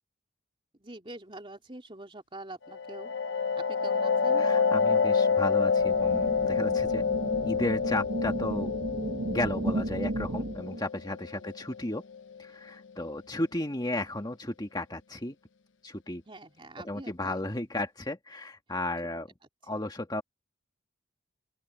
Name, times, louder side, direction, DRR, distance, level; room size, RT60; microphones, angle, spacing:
voice 1, 0.8-3.1 3.7-4.5 11.3-11.6 13.0-13.1 16.3-17.4, right 2 dB, 25° right, 3.3 m, -45 dB
sound 1, 2.7-12.2, left 5 dB, 65° left, 0.9 m, -28 dB
voice 2, 4.4-7.0 7.4-8.7 9.3-12.0 12.4-15.4 15.8-16.2 16.8-19.3 19.7-20.2, left 1 dB, 20° left, 2.0 m, -34 dB
sound 2, 5.8-10.8, right 1 dB, 50° right, 0.9 m, -34 dB
open air
head